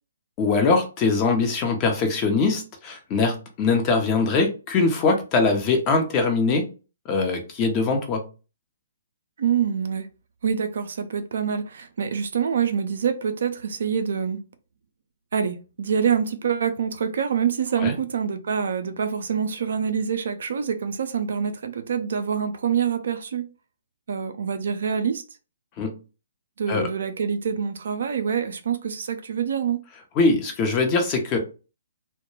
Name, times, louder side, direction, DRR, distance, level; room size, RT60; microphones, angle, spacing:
voice 1, 0.4-6.7 7.1-8.2 17.8-17.9 25.8-25.9 26.7-26.9 30.2-31.4, left 4 dB, 30° left, 0.7 m, -22 dB
voice 2, 9.4-10.1 10.4-14.4 15.3-23.5 24.1-25.2 26.6-29.8, right 7 dB, 60° right, 0.4 m, -26 dB
2.2 x 2.1 x 3.1 m
figure-of-eight pair, 130°, 0 cm